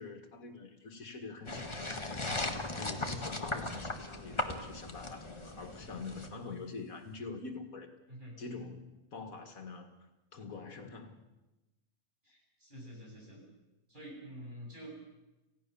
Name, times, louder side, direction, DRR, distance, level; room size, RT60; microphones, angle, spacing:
voice 1, 0.0-7.9 8.4-9.9 10.3-11.2, left 4 dB, 70° left, 6 dB, 2.3 m, -45 dB
sound 1, 1.5-6.3, left 2 dB, 20° left, 1.7 m, -38 dB
voice 2, 12.2-13.4 13.9-15.0, equal, 35° right, -2 dB, 8.2 m, -48 dB
28.5 x 16.5 x 7.0 m, 1.0 s
omnidirectional pair, 1.5 m